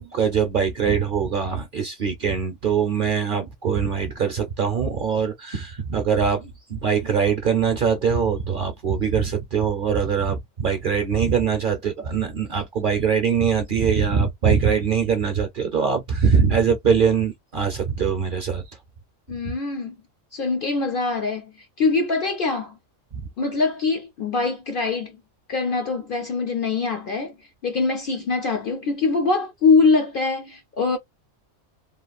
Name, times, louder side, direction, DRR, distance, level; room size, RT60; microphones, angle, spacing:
voice 1, 0.0-18.6 19.4-19.5 23.1-23.3, right 6 dB, 50° right, 0.7 m, -22 dB
voice 2, 19.3-20.0 20.3-22.8 23.4-25.2 25.5-27.3 27.6-31.0, left 4 dB, 55° left, 0.6 m, -23 dB
3.0 x 2.3 x 2.3 m
omnidirectional pair, 1.3 m